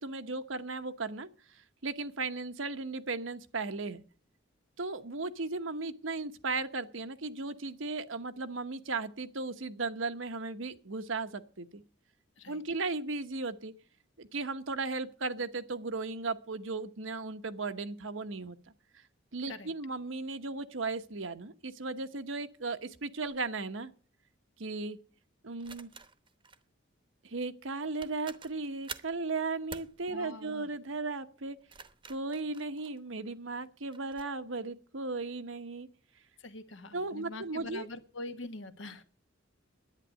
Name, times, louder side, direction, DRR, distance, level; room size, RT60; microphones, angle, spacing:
voice 1, 0.0-4.0 4.8-11.8 12.5-13.7 14.2-18.6 19.3-23.9 24.6-25.0 25.4-25.9 27.2-31.6 32.1-35.9 36.9-37.9, right 3 dB, 85° right, 1.1 m, -36 dB
sound 1, 23.2-23.4 25.6-26.6 27.6-27.7 28.0-29.2 29.7-30.0 31.5-33.3 33.9-34.3, right 5 dB, 25° right, 0.9 m, -48 dB
voice 2, 30.1-30.7 36.4-39.0, left 2 dB, 75° left, 1.3 m, -44 dB
11.0 x 9.4 x 7.5 m
head